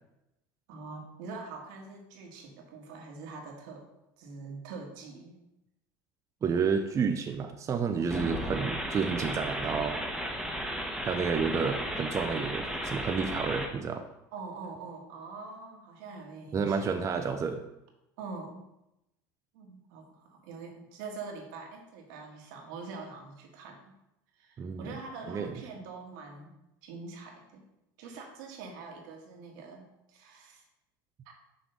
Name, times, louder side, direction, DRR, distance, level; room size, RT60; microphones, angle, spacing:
voice 1, 0.7-3.9 4.2-5.4 14.3-17.0 18.2-18.6 19.5-23.9 24.3-26.6 26.8-27.6 28.0-30.6 31.2-31.3, right 4 dB, 75° right, 1 dB, 1.5 m, -44 dB
voice 2, 6.4-10.0 11.0-14.0 16.5-17.6 24.6-24.9 25.3-25.5, right 5 dB, 30° right, 6 dB, 0.5 m, -30 dB
sound 1, 8.1-13.7, equal, 5° right, 1.0 m, -34 dB
6.1 x 3.3 x 5.4 m, 0.88 s
supercardioid pair, 100°, 11 cm